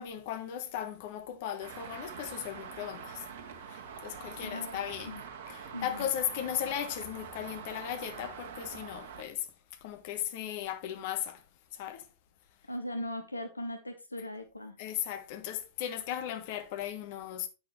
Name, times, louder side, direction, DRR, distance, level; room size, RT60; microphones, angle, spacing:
voice 1, 0.0-3.2 3.7-5.2 5.5-9.5 9.8-11.4 11.7-12.1 14.8-17.5, left 10 dB, 50° left, 1.2 m, -37 dB
Traffic noise roadway noise, 1.6-9.2, right 7 dB, 55° right, 1.2 m, -45 dB
voice 2, 4.4-5.2 5.7-6.1 12.7-14.8, left 1 dB, 80° left, 0.8 m, -39 dB
8.4 x 6.5 x 3.1 m
figure-of-eight pair, 90°, 0 cm